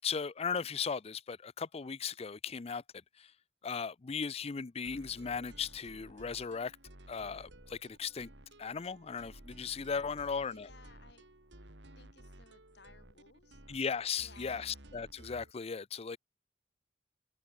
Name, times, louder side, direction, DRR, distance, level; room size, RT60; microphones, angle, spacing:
voice 1, 0.0-2.8 3.2-3.3 3.6-6.8 7.1-8.3 8.6-10.7 13.7-16.2, left 6 dB, 35° left, 0.5 m, -37 dB
sound 1, 4.8-15.5, right 1 dB, 75° right, 3.1 m, -55 dB
voice 2, 10.2-11.2 11.9-13.6 14.2-14.8, left 4 dB, 70° left, 3.3 m, -59 dB
head